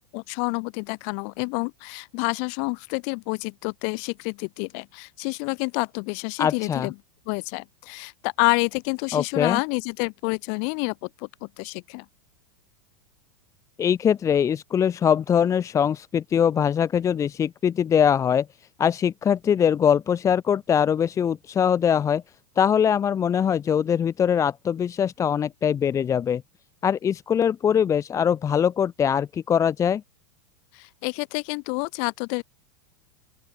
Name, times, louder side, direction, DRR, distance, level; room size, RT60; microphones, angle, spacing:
voice 1, 0.0-6.9 7.3-12.1 30.7-32.4, left 40 dB or more, 50° left, 5.6 m, -28 dB
voice 2, 6.4-6.9 9.1-9.6 13.8-18.5 18.8-22.2 22.6-26.4 26.8-30.0, left 8 dB, 25° left, 0.8 m, -22 dB
open air
hypercardioid pair, 95°, 14 cm